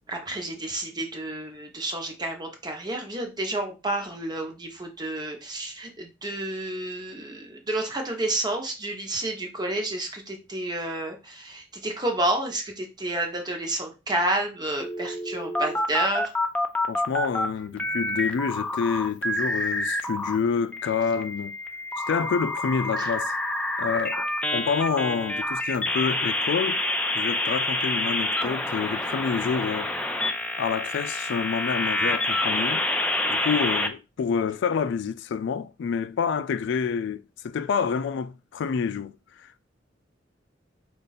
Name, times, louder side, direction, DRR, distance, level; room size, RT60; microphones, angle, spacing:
voice 1, 0.1-16.3 23.0-23.1 29.0-29.1, right 1 dB, 20° right, 1.0 m, -30 dB
sound 1, 14.8-17.5 17.8-20.4 20.7-33.9, left 1 dB, 5° left, 0.5 m, -27 dB
voice 2, 16.9-21.6 22.1-23.4 23.8-26.8 27.1-29.9 30.5-32.8 33.3-39.6, left 6 dB, 65° left, 0.3 m, -28 dB
5.1 x 2.5 x 4.1 m
head